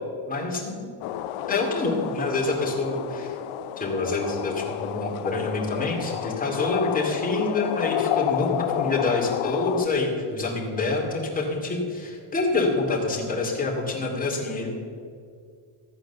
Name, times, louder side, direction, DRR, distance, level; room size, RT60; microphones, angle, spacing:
voice 1, 0.3-0.9 1.5-3.4 3.8-14.7, left 3 dB, 15° left, -2 dB, 2.7 m, -27 dB
sound 1, 1.0-9.9, left 11 dB, 90° left, 0.7 m, -30 dB
14.5 x 8.9 x 6.9 m, 2.2 s
cardioid pair, 165°, 49 cm